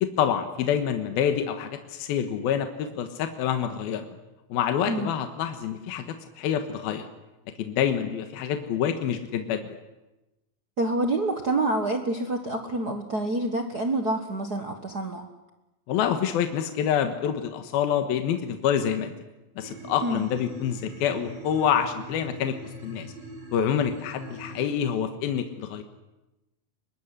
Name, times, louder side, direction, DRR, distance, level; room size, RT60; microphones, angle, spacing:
voice 1, 0.0-4.0 4.5-6.1 6.4-7.1 7.6-9.6 15.9-19.1 19.6-23.1 23.5-25.8, left 9 dB, 80° left, 7 dB, 3.2 m, -27 dB
voice 2, 10.8-15.2 20.0-20.2, right 2 dB, 70° right, 4 dB, 0.9 m, -27 dB
sound 1, 19.6-24.7, right 1 dB, 45° right, 5.8 m, -42 dB
23.5 x 20.0 x 9.9 m, 1.0 s
omnidirectional pair, 4.3 m